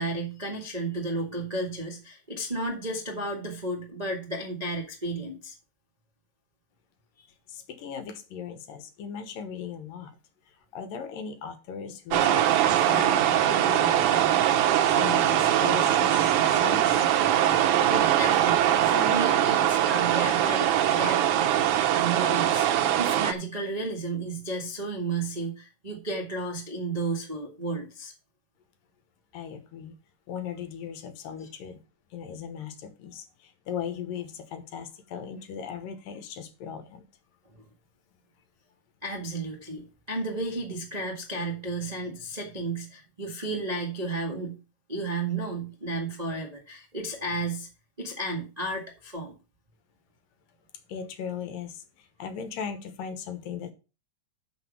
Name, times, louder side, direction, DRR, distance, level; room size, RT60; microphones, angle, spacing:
voice 1, 0.0-5.5 17.8-22.7 22.9-28.1 39.0-44.5 44.9-47.7 48.0-49.3, right 2 dB, 30° right, 0 dB, 0.7 m, -33 dB
voice 2, 7.5-10.1 10.7-12.5 12.9-16.3 16.6-17.0 29.3-29.9 30.3-31.8 32.1-37.0 50.9-53.7, left 7 dB, 85° left, 9 dB, 2.9 m, -38 dB
sound 1, 12.1-23.3, right 11 dB, 70° right, 2.1 m, -22 dB
6.4 x 6.3 x 7.3 m, 0.33 s
omnidirectional pair, 3.9 m